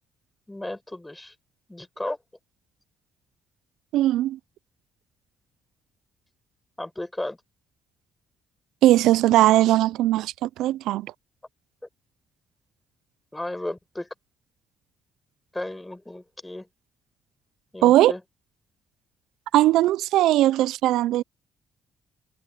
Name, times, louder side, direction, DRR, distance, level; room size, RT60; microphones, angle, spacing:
voice 1, 0.5-1.3 1.7-2.2 6.8-7.4 13.3-14.1 15.5-16.7 17.7-18.2, left 1 dB, 10° left, 7.4 m, -34 dB
voice 2, 3.9-4.4 8.8-11.1 17.8-18.1 19.5-21.2, right 14 dB, 90° right, 0.3 m, -19 dB
cardioid pair, 125°, 0 cm